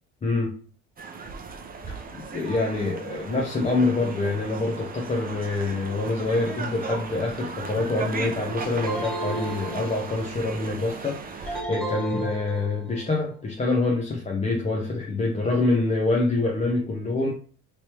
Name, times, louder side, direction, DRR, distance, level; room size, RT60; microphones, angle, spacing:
voice 1, 0.2-0.5 1.9-2.0 2.3-17.3, left 2 dB, 20° left, 0 dB, 0.7 m, -26 dB
sound 1, 1.0-11.6, right 4 dB, 25° right, 0.6 m, -36 dB
sound 2, 8.9-10.4 11.5-13.0, right 2 dB, ahead, 1.3 m, -33 dB
3.1 x 2.9 x 2.9 m, 0.44 s
supercardioid pair, 80°, 32 cm